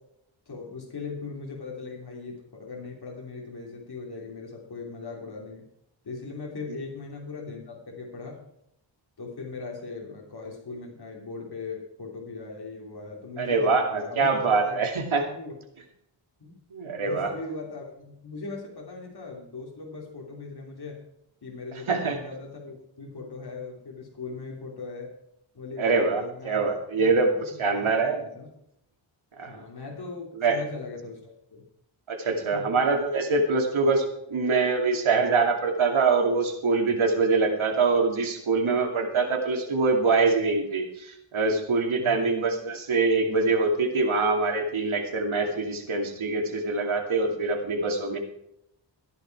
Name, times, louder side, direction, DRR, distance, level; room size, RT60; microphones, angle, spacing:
voice 1, 0.5-5.6 6.0-8.4 9.2-14.8 15.3-15.5 16.4-16.5 17.0-21.0 21.4-25.1 25.5-26.6 26.9-27.1 27.4-28.5 29.5-31.6 32.5-32.8 42.0-42.2, left 4 dB, 50° left, -1 dB, 3.1 m, -39 dB
voice 2, 13.4-15.2 16.7-17.3 21.9-22.2 25.8-27.3 27.6-28.2 29.4-29.6 30.4-30.6 32.1-48.2, right 4 dB, 85° right, 3 dB, 2.6 m, -24 dB
14.5 x 10.5 x 4.7 m, 0.78 s
wide cardioid pair, 105°, 47 cm